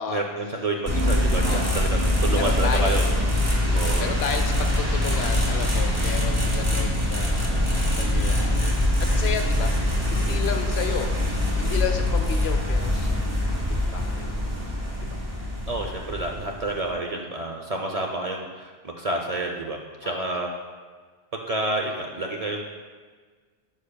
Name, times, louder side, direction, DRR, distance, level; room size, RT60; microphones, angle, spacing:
voice 1, 0.1-3.1 3.7-4.1 15.7-20.5 21.3-22.6, right 2 dB, 50° right, 1 dB, 0.5 m, -29 dB
sound 1, 0.9-16.9, left 1 dB, 15° right, 0.9 m, -24 dB
voice 2, 1.4-1.8 2.4-3.0 3.6-8.7 9.0-11.1 11.6-13.2 13.5-13.6 13.9-14.3 15.1-15.2 20.0-20.2, left 7 dB, 75° left, 6 dB, 0.9 m, -32 dB
9.8 x 5.6 x 2.2 m, 1.5 s
omnidirectional pair, 1.1 m